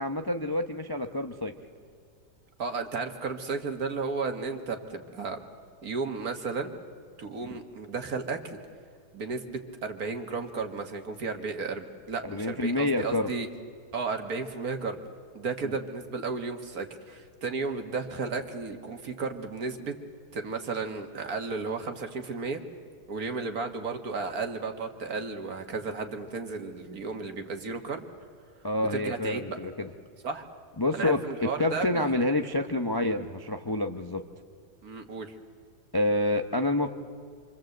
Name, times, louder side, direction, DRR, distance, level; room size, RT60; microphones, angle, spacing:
voice 1, 0.0-1.5 12.2-13.3 28.6-29.9 30.8-34.2 35.9-36.9, left 1 dB, 25° left, 5 dB, 0.5 m, -28 dB
voice 2, 2.6-5.4 5.8-6.7 7.2-8.6 9.1-13.5 13.9-15.0 15.3-20.0 20.3-22.6 23.1-28.0 28.9-29.6 30.2-30.4 30.9-32.0 34.8-35.3, right 4 dB, 60° right, 5 dB, 2.1 m, -33 dB
27.5 x 24.0 x 7.9 m, 2.2 s
omnidirectional pair, 1.8 m